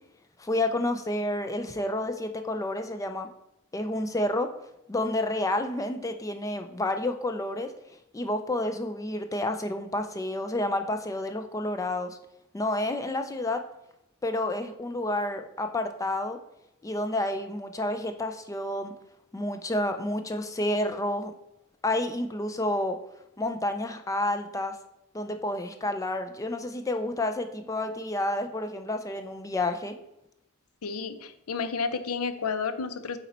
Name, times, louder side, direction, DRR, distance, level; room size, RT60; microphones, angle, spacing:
voice 1, 0.4-3.3 3.7-4.5 4.9-7.7 8.1-12.2 12.5-13.6 14.2-16.4 16.8-18.9 19.3-21.3 21.8-23.0 23.4-24.8 25.1-29.9, left 1 dB, 15° left, 7 dB, 0.4 m, -30 dB
voice 2, 30.8-33.2, left 5 dB, 75° left, 12 dB, 0.6 m, -31 dB
8.1 x 4.1 x 4.3 m, 0.84 s
head